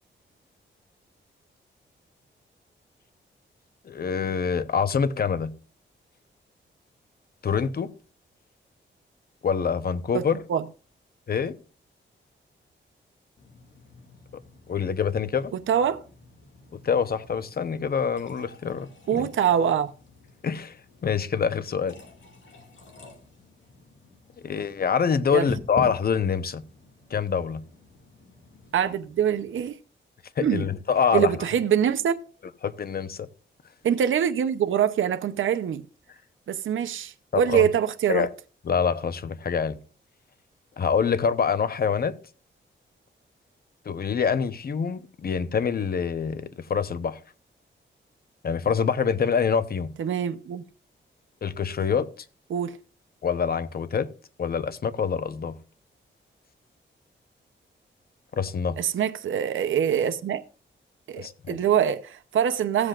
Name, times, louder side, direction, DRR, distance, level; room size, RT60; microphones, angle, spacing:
voice 1, 3.9-5.5 7.4-7.9 9.4-10.4 11.3-11.5 14.7-15.5 16.7-19.3 20.4-20.8 21.0-22.0 24.4-26.6 27.1-27.6 30.4-31.3 32.6-33.3 37.3-37.6 38.1-38.3 38.7-39.8 40.8-42.1 43.8-47.2 48.4-49.9 51.4-52.1 53.2-54.1 54.4-55.5 58.3-58.8 61.2-61.6, left 6 dB, 50° left, 0.9 m, -25 dB
voice 2, 10.1-10.6 15.7-16.0 19.1-19.9 25.3-25.5 28.7-29.7 30.4-30.7 31.1-32.2 33.8-35.8 36.5-38.3 50.0-50.6 52.5-52.8 58.8-60.4 61.1-62.9, right 9 dB, 75° right, 0.8 m, -24 dB
sound 1, 13.4-29.7, left 2 dB, 70° left, 2.4 m, -46 dB
16.0 x 7.9 x 2.5 m
cardioid pair, 85°, 20 cm